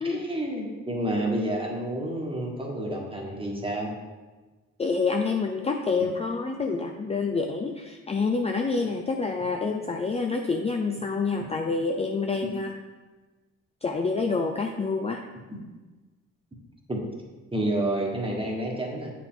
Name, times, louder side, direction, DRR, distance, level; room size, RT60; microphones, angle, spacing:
voice 1, 0.0-3.9 16.9-17.0 17.5-19.1, right 1 dB, 15° right, -1 dB, 1.5 m, -29 dB
voice 2, 4.8-12.7 13.8-15.2, left 4 dB, 20° left, 3 dB, 0.5 m, -27 dB
7.7 x 5.0 x 3.8 m, 1.3 s
cardioid pair, 90°, 30 cm